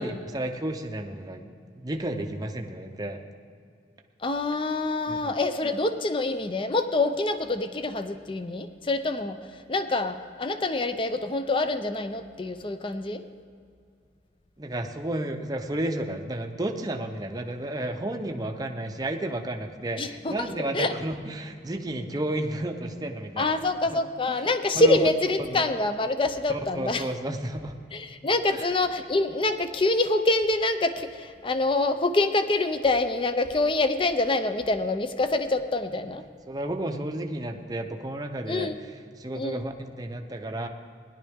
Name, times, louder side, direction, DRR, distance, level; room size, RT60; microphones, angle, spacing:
voice 1, 0.0-3.2 5.1-5.4 14.6-23.6 23.9-24.0 24.3-24.5 24.7-25.1 25.4-25.6 26.5-27.7 28.5-28.7 36.5-40.7, right 1 dB, 20° right, 3 dB, 0.6 m, -32 dB
voice 2, 4.2-9.4 9.7-13.2 20.0-20.9 23.4-27.1 27.9-36.2 38.5-38.8 39.3-39.7, left 2 dB, 30° left, 9 dB, 0.6 m, -26 dB
17.5 x 10.5 x 3.6 m, 2.3 s
head